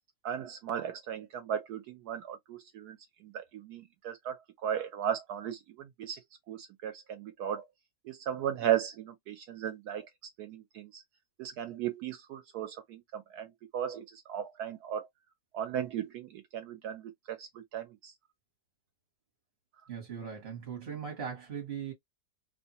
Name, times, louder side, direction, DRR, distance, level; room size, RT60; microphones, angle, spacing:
voice 1, 0.2-6.2 6.5-7.7 8.0-10.1 10.4-11.0 11.4-15.1 15.5-18.1, right 10 dB, 70° right, 1.0 m, -36 dB
voice 2, 19.9-21.9, right 7 dB, 40° right, 1.0 m, -39 dB
2.9 x 2.1 x 2.7 m
omnidirectional pair, 1.9 m